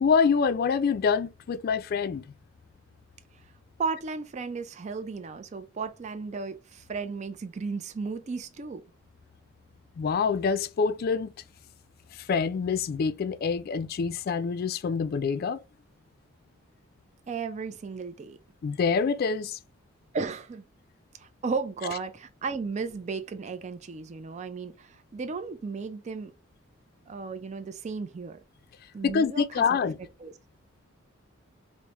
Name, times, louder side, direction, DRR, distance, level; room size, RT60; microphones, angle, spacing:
voice 1, 0.0-2.2 10.0-11.3 12.1-15.6 18.6-19.6 29.0-30.0, left 5 dB, 50° left, 0.3 m, -26 dB
voice 2, 3.8-8.8 17.3-18.4 20.1-20.6 21.2-26.3 27.1-28.4 28.9-29.6 30.2-30.3, right 4 dB, 35° right, 0.4 m, -34 dB
4.6 x 2.1 x 2.8 m
head